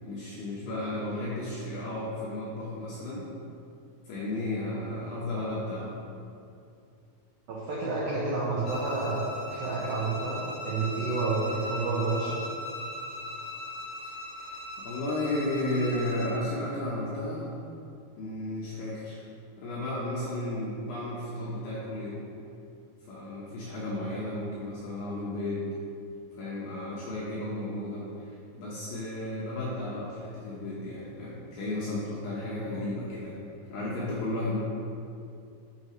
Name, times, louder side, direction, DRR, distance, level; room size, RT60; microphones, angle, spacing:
voice 1, 0.0-3.3 4.1-6.0 14.0-17.5 18.2-19.2 19.6-22.2 23.1-25.7 26.3-33.4 33.7-34.6, left 1 dB, 75° left, -7 dB, 2.4 m, -33 dB
voice 2, 7.5-12.4 32.6-32.9, right 3 dB, 85° right, -6 dB, 2.0 m, -30 dB
Bowed string instrument, 8.6-16.4, left 1 dB, 50° left, 2.0 m, -39 dB
12.5 x 6.2 x 3.1 m, 2.6 s
omnidirectional pair, 5.9 m